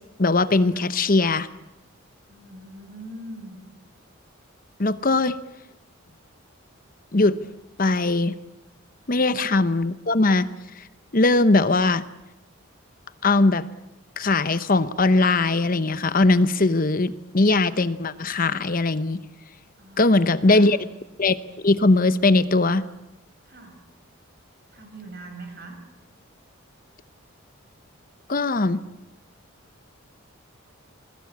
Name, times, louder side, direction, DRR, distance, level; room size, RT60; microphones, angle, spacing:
voice 1, 0.2-1.5 4.8-5.4 7.1-7.4 7.8-8.4 9.1-10.5 10.7-10.8 11.1-12.0 13.2-13.7 14.2-19.2 20.0-20.8 21.2-22.8 28.3-28.8, left 2 dB, 40° left, 14 dB, 0.8 m, -20 dB
voice 2, 2.3-3.6 9.0-9.3 19.8-20.7 23.4-23.8 24.7-25.8, right 1 dB, 45° right, 6 dB, 5.0 m, -42 dB
28.5 x 21.0 x 8.5 m, 0.98 s
head